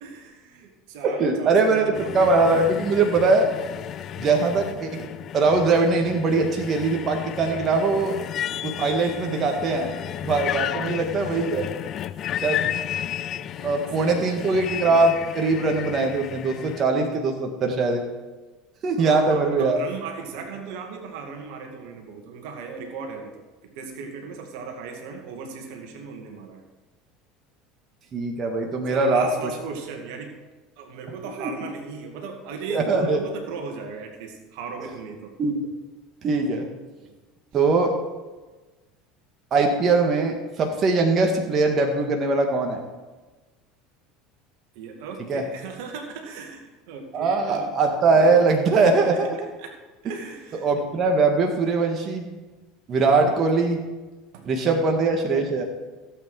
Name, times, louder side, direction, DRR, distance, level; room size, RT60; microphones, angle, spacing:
voice 1, 0.0-2.2 10.6-10.9 13.0-13.1 13.6-14.6 19.0-26.6 28.9-30.3 30.8-35.3 37.0-37.2 44.8-47.7 48.9-49.8 50.0-50.7 53.0-53.4 54.3-54.9, right 5 dB, 65° right, 3 dB, 2.1 m, -37 dB
voice 2, 1.0-3.5 4.2-8.1 8.6-9.9 10.2-11.7 12.4-12.7 13.6-18.0 18.8-19.8 28.1-29.3 31.4-31.7 32.7-33.2 35.4-35.6 36.2-36.7 37.5-37.9 39.5-42.8 45.3-45.4 47.1-49.3 50.6-52.3 52.9-53.8 54.5-55.6, right 3 dB, 40° right, 3 dB, 1.8 m, -21 dB
sound 1, 1.9-16.8, left 11 dB, 45° left, 0.5 m, -33 dB
16.0 x 8.4 x 4.9 m, 1.2 s
hypercardioid pair, 75°, 0 cm